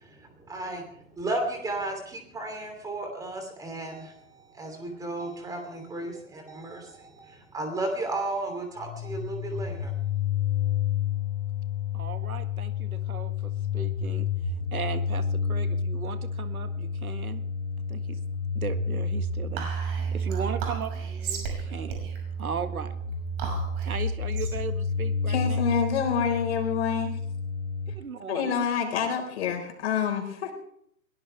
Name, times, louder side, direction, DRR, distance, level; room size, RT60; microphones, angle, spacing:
voice 1, 0.0-10.0, right 2 dB, 10° right, 5 dB, 2.9 m, -34 dB
sound 1, 8.8-27.9, left 4 dB, 20° left, 4.1 m, -30 dB
voice 2, 11.9-14.3 14.7-17.4 17.9-18.2 18.6-22.1 22.4-23.0 23.8-25.8 28.0-28.7, right 6 dB, 80° right, 9 dB, 1.8 m, -37 dB
Whispering, 19.6-26.2, right 5 dB, 40° right, 6.0 m, -38 dB
voice 3, 25.2-27.1 28.3-30.5, left 7 dB, 50° left, 3 dB, 4.7 m, -27 dB
22.0 x 17.5 x 3.4 m, 0.69 s
hypercardioid pair, 140°, 42 cm